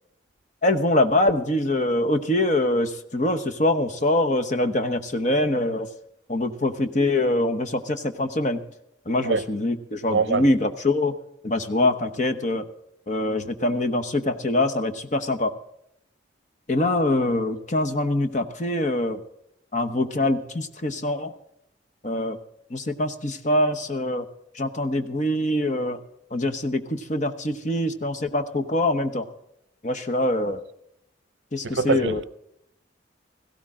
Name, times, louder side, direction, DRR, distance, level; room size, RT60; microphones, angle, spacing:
voice 1, 0.6-5.9 6.3-8.6 9.1-11.1 11.4-12.7 13.1-15.5 16.7-19.2 19.7-21.3 22.0-22.4 22.7-24.3 24.5-26.0 26.3-29.2 29.8-30.6 31.5-32.2, left 1 dB, 40° left, 1.1 m, -24 dB
voice 2, 10.1-10.4 31.6-32.2, right 4 dB, 70° right, 0.6 m, -23 dB
17.0 x 16.5 x 3.7 m
head